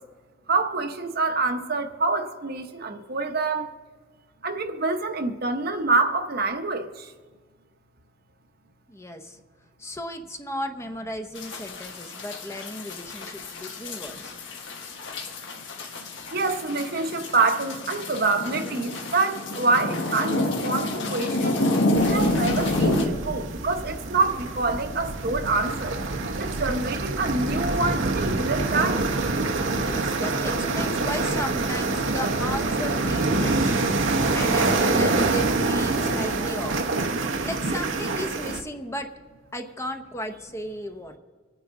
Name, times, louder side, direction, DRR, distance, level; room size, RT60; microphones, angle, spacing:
voice 1, 0.5-3.7 4.4-6.9 16.3-21.6 22.0-25.9 26.4-29.0, right 3 dB, 55° right, 0.9 m, -26 dB
voice 2, 8.9-9.4 9.8-14.4 29.8-33.7 34.3-36.8 37.4-39.1 39.5-41.1, equal, 15° left, 0.7 m, -35 dB
sound 1, 11.4-23.1, left 1 dB, 75° left, 1.4 m, -28 dB
sound 2, 22.0-38.6, right 3 dB, 90° right, 0.9 m, -26 dB
25.0 x 9.4 x 3.7 m
head